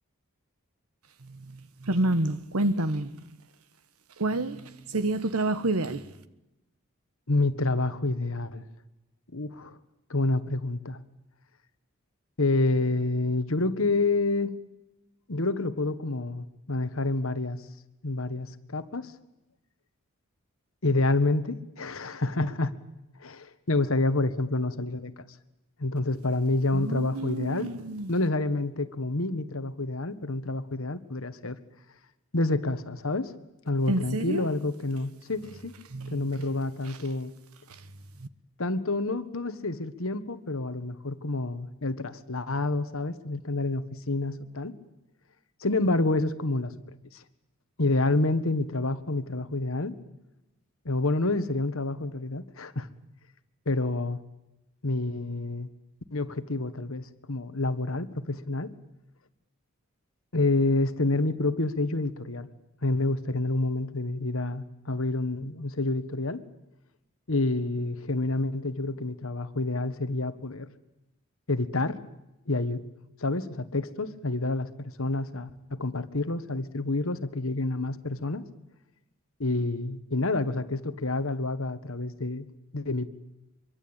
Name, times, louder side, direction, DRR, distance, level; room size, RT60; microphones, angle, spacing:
voice 1, 1.3-3.2 4.2-6.0 26.7-28.1 33.9-34.5 35.9-36.4 38.2-38.3, right 2 dB, 85° right, 1.3 m, -29 dB
voice 2, 7.3-8.6 9.3-9.8 10.1-11.0 12.4-14.5 15.3-17.6 18.0-19.1 20.8-22.7 23.2-25.2 25.8-27.7 28.1-31.6 32.3-33.3 33.6-35.7 36.1-37.3 38.6-44.7 45.6-46.7 47.1-47.2 47.8-49.9 50.8-52.9 53.6-54.2 54.8-55.7 56.1-58.7 60.3-62.5 62.8-66.4 67.3-70.7 71.5-72.0 72.5-72.8 73.2-78.4 79.4-82.5 82.7-83.1, left 2 dB, 70° left, 1.4 m, -28 dB
24.5 x 23.5 x 8.9 m
head